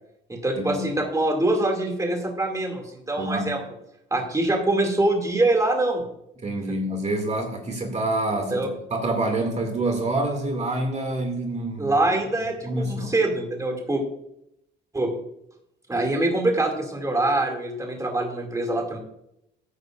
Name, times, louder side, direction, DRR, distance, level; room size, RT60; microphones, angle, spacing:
voice 1, 0.3-3.6 4.1-6.0 8.5-8.7 11.8-14.0 14.9-15.1 15.9-19.0, right 2 dB, 15° right, 2 dB, 2.4 m, -24 dB
voice 2, 3.2-3.6 6.4-12.0 12.7-13.1, right 2 dB, 35° right, 3 dB, 2.3 m, -27 dB
15.0 x 9.5 x 2.5 m, 0.78 s
cardioid pair, 90°, 20 cm